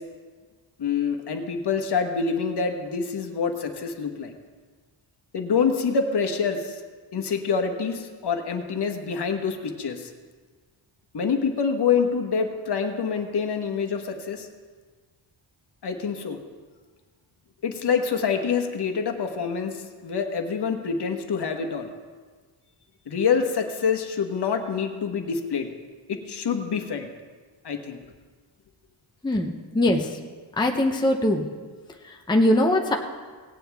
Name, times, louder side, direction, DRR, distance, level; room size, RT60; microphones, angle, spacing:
voice 1, 0.8-4.3 5.3-6.8 7.1-10.1 11.1-14.5 15.8-16.4 17.6-21.9 23.1-25.7 26.1-27.1 27.6-28.0, left 6 dB, 55° left, 4 dB, 1.2 m, -26 dB
voice 2, 29.2-30.1 30.6-31.5 32.3-33.0, left 1 dB, 10° left, 2 dB, 0.7 m, -21 dB
18.0 x 9.3 x 3.5 m, 1.5 s
wide cardioid pair, 140°, 46 cm